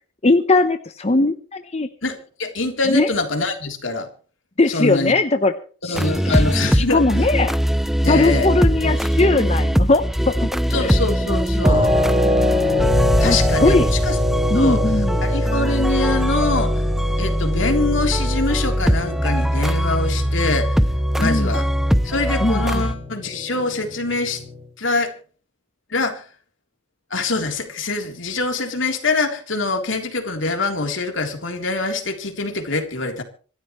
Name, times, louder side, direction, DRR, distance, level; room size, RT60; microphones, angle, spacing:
voice 1, 0.2-1.9 2.9-3.1 4.6-5.5 5.8-6.4 6.7-7.5 8.1-10.5 10.8-10.9 13.2-13.9 14.5-15.2 21.2-21.6 22.4-22.8, left 2 dB, 35° left, 8 dB, 0.9 m, -19 dB
voice 2, 2.0-4.1 4.7-5.1 5.8-7.0 8.0-8.5 8.8-8.9 10.7-11.9 13.2-14.2 14.5-14.8 15.2-16.8 17.2-20.8 21.2-21.7 22.0-24.4 24.8-25.1 25.9-26.3 27.1-33.2, left 3 dB, 70° left, 4 dB, 3.6 m, -24 dB
sound 1, 5.9-22.9, equal, ahead, 0.6 m, -21 dB
sound 2, 11.6-24.6, left 1 dB, 25° right, 2.7 m, -25 dB
26.0 x 12.5 x 3.2 m, 0.40 s
head